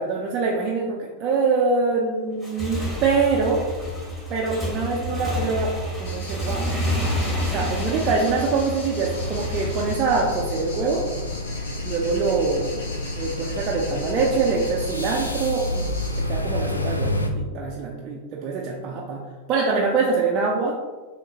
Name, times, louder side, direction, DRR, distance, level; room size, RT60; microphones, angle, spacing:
voice 1, 0.0-3.6 4.3-5.7 6.0-6.7 7.5-11.0 11.8-12.7 13.1-15.9 16.3-19.2 19.5-20.8, right 4 dB, 35° right, -2 dB, 0.4 m, -24 dB
Motorcycle / Engine, 2.3-9.9, left 1 dB, 10° left, 1.4 m, -28 dB
sound 1, 6.0-16.2, left 2 dB, 55° left, 0.9 m, -41 dB
sound 2, 9.0-17.3, left 1 dB, 80° left, 0.4 m, -29 dB
6.1 x 2.1 x 2.7 m, 1.4 s
figure-of-eight pair, 90°, 0 cm